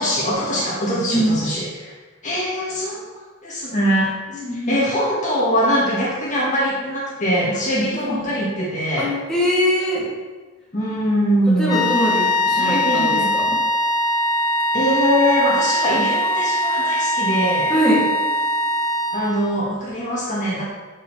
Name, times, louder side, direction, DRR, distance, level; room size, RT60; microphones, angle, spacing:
voice 1, 0.0-2.0 2.2-3.0 3.4-9.1 10.7-11.8 12.6-13.3 14.7-17.7 19.1-20.6, equal, 35° left, -6 dB, 1.9 m, -22 dB
voice 2, 4.3-4.8 8.0-8.3 9.0-10.1 11.6-13.6 17.7-18.1, equal, 5° left, -8 dB, 2.6 m, -22 dB
sound 1, 11.7-19.6, equal, 20° left, 1.0 m, -21 dB
13.5 x 5.5 x 3.3 m, 1.3 s
head